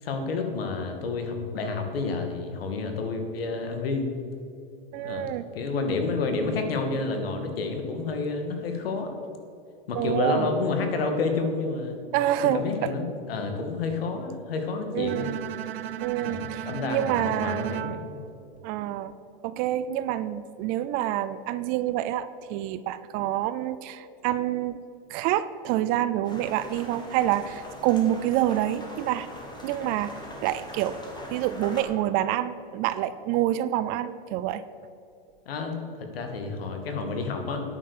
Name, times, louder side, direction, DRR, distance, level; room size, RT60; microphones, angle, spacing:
voice 1, 0.0-4.1 5.0-5.3 5.5-9.1 9.9-12.0 12.5-15.3 16.2-18.2 35.5-37.6, left 3 dB, 80° left, 5 dB, 2.3 m, -29 dB
voice 2, 4.9-5.4 9.9-10.5 12.1-12.9 14.9-15.4 16.0-18.0 18.6-19.1 19.4-24.8 25.1-29.3 29.6-31.0 31.3-34.6, right 12 dB, 30° right, 14 dB, 0.4 m, -27 dB
Bowed string instrument, 15.1-19.2, right 12 dB, 80° right, 0.7 m, -37 dB
sound 1, 26.2-31.8, equal, 15° left, 2.2 m, -42 dB
10.0 x 9.0 x 6.7 m, 2.6 s
supercardioid pair, 140°, 29 cm